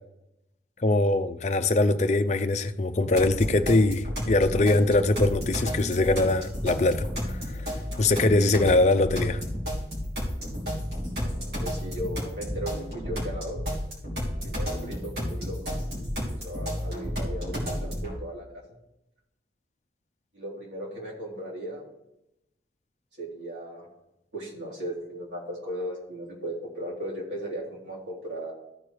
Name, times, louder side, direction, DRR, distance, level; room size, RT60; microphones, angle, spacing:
voice 1, 0.8-9.4, left 2 dB, 40° left, 0.5 m, -23 dB
sound 1, 3.2-18.2, equal, 60° right, 3.2 m, -32 dB
voice 2, 11.6-13.6 14.4-15.6 16.3-18.6 20.3-21.8 23.2-23.9 24.3-28.5, right 1 dB, 85° right, 3.5 m, -36 dB
14.0 x 4.7 x 4.9 m
head